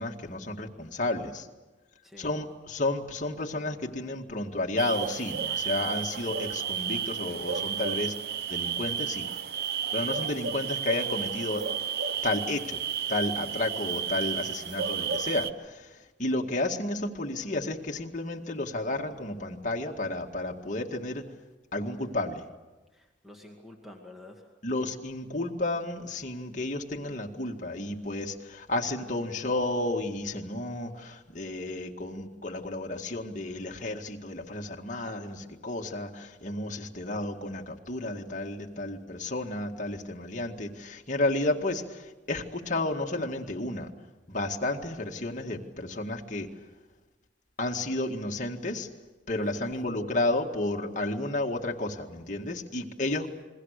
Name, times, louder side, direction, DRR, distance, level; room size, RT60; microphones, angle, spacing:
voice 1, 0.0-1.5 2.2-8.1 8.5-9.3 9.9-11.6 12.2-12.8 13.1-21.2 21.7-22.4 24.6-43.9 44.3-46.5 47.6-48.9 49.3-53.3, left 2 dB, 45° left, 2 dB, 2.0 m, -32 dB
voice 2, 2.0-2.4 22.9-24.5 49.3-49.7 53.1-53.4, left 2 dB, ahead, 1 dB, 2.2 m, -50 dB
sound 1, 4.8-15.5, right 7 dB, 55° right, 0.7 m, -32 dB
28.5 x 22.0 x 6.7 m, 1.2 s
head